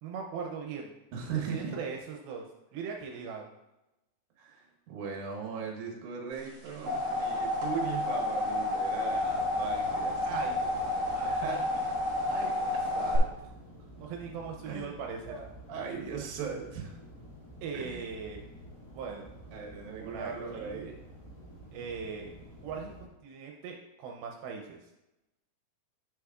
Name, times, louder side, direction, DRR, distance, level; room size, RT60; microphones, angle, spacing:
voice 1, 0.0-0.9 1.5-2.4 2.7-3.5 10.2-10.8 11.1-11.6 12.3-13.5 14.0-15.4 17.6-18.4 18.9-19.3 20.0-20.9 21.7-22.3 22.6-24.9, right 5 dB, 80° right, 2 dB, 2.5 m, -40 dB
voice 2, 1.1-1.7 4.4-10.3 11.2-11.8 14.7-15.0 15.3-17.0 17.7-18.0 19.5-21.0, right 6 dB, 65° right, 0 dB, 2.4 m, -38 dB
sound 1, 6.5-13.2, left 1 dB, 50° right, 2.7 m, -30 dB
sound 2, 9.1-23.1, equal, 35° left, 0.4 m, -50 dB
10.5 x 6.4 x 2.4 m, 0.95 s
omnidirectional pair, 4.3 m